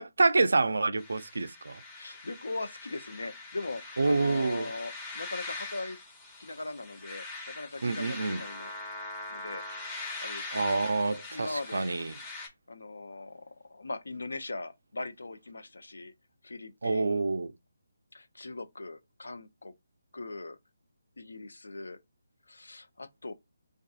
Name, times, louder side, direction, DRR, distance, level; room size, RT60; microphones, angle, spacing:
voice 1, 0.0-1.8 4.0-4.7 7.8-8.4 10.5-12.2 16.8-17.5, right 3 dB, 70° right, 0.3 m, -27 dB
sound 1, 1.0-12.5, left 2 dB, 15° left, 0.8 m, -42 dB
voice 2, 1.9-6.0 6.4-8.7 9.3-10.8 11.3-11.8 12.7-16.1 16.4-17.2 18.1-19.7 20.1-20.6 21.2-22.0 22.5-23.3, left 2 dB, 75° left, 0.5 m, -40 dB
2.5 x 2.4 x 2.4 m
figure-of-eight pair, 150°, 0 cm